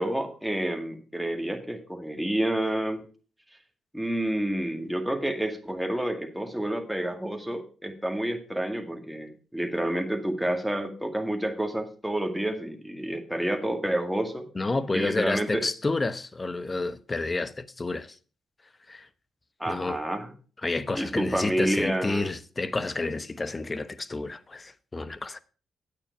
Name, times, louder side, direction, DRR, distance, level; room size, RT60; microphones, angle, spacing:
voice 1, 0.0-3.1 3.9-14.5 14.9-15.7 19.6-20.3 21.0-22.3, right 1 dB, ahead, 2.1 m, -29 dB
voice 2, 14.5-18.1 18.9-19.1 19.7-20.0 20.6-25.4, left 3 dB, 30° left, 0.9 m, -30 dB
9.7 x 8.6 x 4.6 m
supercardioid pair, 60°, 0 cm